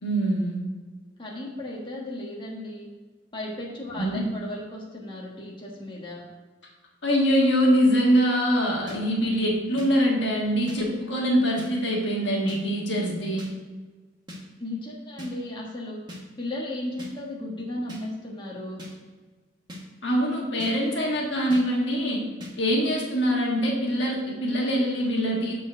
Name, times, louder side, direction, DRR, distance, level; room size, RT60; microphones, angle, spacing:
voice 1, 0.0-0.6 4.0-4.2 7.0-13.5 20.0-22.2 22.6-25.5, equal, 70° left, -1 dB, 1.5 m, -23 dB
voice 2, 1.2-2.9 3.3-6.3 14.6-16.0 16.4-18.8, left 1 dB, 25° left, -4 dB, 1.5 m, -35 dB
sound 1, 8.9-9.0 9.8-9.9 10.7-10.8 11.6-11.7 12.5-12.6 13.4-13.5 14.3-14.4 15.2-15.3 16.1-16.2 17.0-17.1 17.9-18.0 18.8-18.9 19.7-19.8 20.6-20.7 21.5-21.6 22.4-22.5, left 1 dB, 25° right, 1.4 m, -39 dB
7.2 x 4.1 x 6.3 m, 1.3 s
head